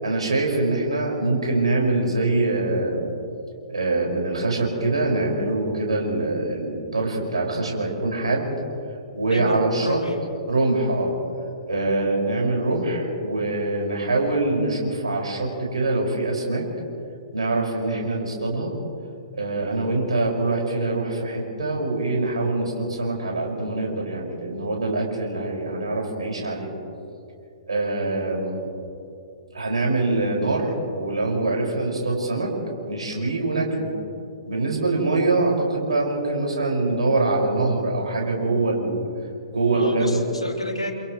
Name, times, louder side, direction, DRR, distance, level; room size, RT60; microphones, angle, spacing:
voice 1, 0.0-3.1 3.7-8.5 9.1-10.0 10.5-11.1 11.7-16.6 17.3-18.7 19.4-26.7 27.7-28.6 29.5-32.5 32.9-33.9 34.5-39.0 39.5-40.2, right 2 dB, 70° right, -2 dB, 5.7 m, -24 dB
voice 2, 9.3-10.1 39.7-40.9, equal, 90° left, 0 dB, 3.5 m, -30 dB
29.5 x 27.5 x 3.2 m, 2.6 s
figure-of-eight pair, 115°, 3 cm